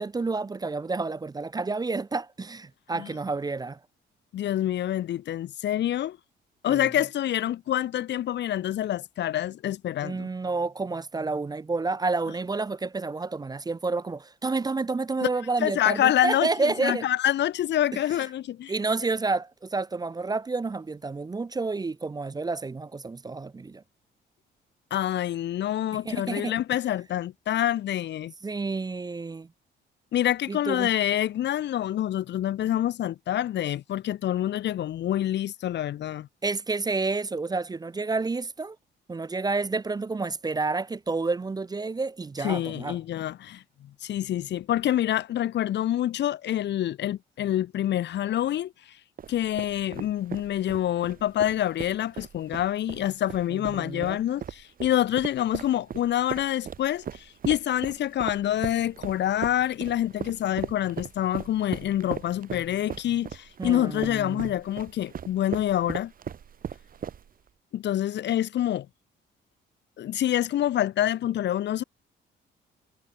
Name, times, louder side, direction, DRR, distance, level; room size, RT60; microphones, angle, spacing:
voice 1, 0.0-3.8 6.6-6.9 10.0-17.1 18.7-23.8 26.1-26.5 28.4-29.5 30.5-30.9 36.4-38.8 39.1-43.0 53.5-54.2 63.6-64.5, right 3 dB, 20° right, 0.5 m, -30 dB
voice 2, 4.3-6.2 6.6-10.3 15.2-15.3 15.6-18.7 24.9-28.3 30.1-36.3 42.4-48.7 49.3-66.1 67.7-68.9 70.0-71.8, left 12 dB, 60° left, 0.7 m, -27 dB
sound 1, 49.2-67.5, right 8 dB, 45° right, 0.9 m, -38 dB
cardioid pair, 90°, 20 cm